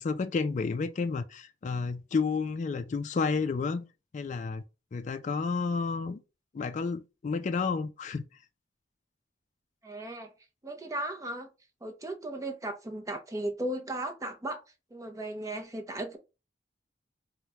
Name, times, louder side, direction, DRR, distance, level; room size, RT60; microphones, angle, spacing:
voice 1, 0.0-3.8 4.1-4.6 4.9-6.2 6.5-8.2, left 4 dB, 45° left, 0.3 m, -31 dB
voice 2, 9.8-10.3 10.6-11.5 11.8-14.6 14.9-16.2, right 1 dB, 20° right, 0.5 m, -36 dB
4.8 x 2.1 x 2.8 m
head